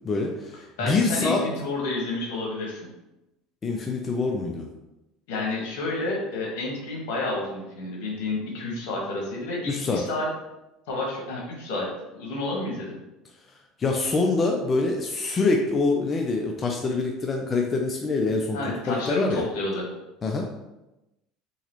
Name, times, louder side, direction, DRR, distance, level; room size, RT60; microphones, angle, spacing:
voice 1, 0.0-1.4 3.6-4.7 9.7-10.0 13.8-18.6 18.9-19.4 20.2-20.4, left 3 dB, 30° left, 1 dB, 0.5 m, -25 dB
voice 2, 0.8-2.9 5.3-10.3 10.9-12.9 18.5-19.9, left 2 dB, 80° left, -2 dB, 1.3 m, -30 dB
3.9 x 3.0 x 3.0 m, 0.96 s
supercardioid pair, 90°, 0 cm